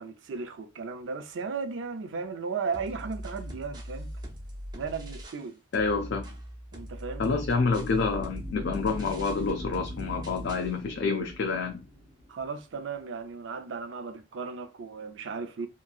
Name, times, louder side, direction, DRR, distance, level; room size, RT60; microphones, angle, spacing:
voice 1, 0.0-4.1 4.7-5.6 6.7-7.4 12.3-15.7, right 5 dB, 85° right, 0.5 m, -35 dB
sound 1, 2.7-5.5 5.7-10.7, equal, 20° right, 0.5 m, -41 dB
voice 2, 5.7-6.2 7.2-11.8, left 4 dB, 70° left, 0.4 m, -28 dB
sound 2, 7.7-12.8, left 1 dB, 90° left, 1.2 m, -43 dB
2.8 x 2.6 x 2.3 m
head